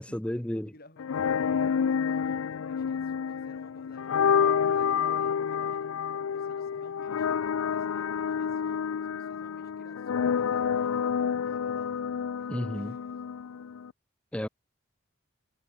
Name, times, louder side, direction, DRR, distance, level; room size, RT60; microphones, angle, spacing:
voice 1, 0.0-0.7 12.5-12.9 14.3-14.5, equal, 5° left, 0.5 m, -32 dB
voice 2, 0.6-5.8 6.1-12.0 12.4-13.1, left 1 dB, 45° left, 4.7 m, -56 dB
sound 1, 1.0-13.9, left 7 dB, 85° left, 0.4 m, -29 dB
head